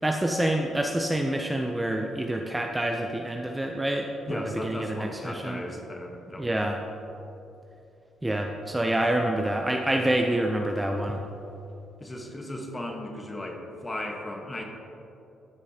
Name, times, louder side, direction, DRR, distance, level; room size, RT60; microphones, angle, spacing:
voice 1, 0.0-5.6 6.4-6.8 8.2-11.2, right 1 dB, 10° right, 2 dB, 0.5 m, -27 dB
voice 2, 4.3-6.5 12.0-14.6, left 1 dB, 20° left, 2 dB, 1.2 m, -36 dB
14.5 x 5.1 x 2.8 m, 2.9 s
cardioid pair, 90°, 0 cm